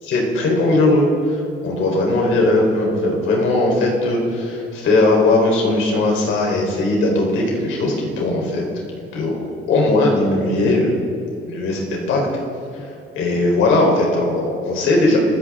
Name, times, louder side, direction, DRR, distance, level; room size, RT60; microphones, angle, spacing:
voice 1, 0.1-8.6 9.1-10.9 11.5-12.2 12.7-12.9 13.1-15.2, left 2 dB, 85° left, -1 dB, 4.2 m, -18 dB
25.5 x 15.0 x 3.8 m, 2.6 s
cardioid pair, 90°, 20 cm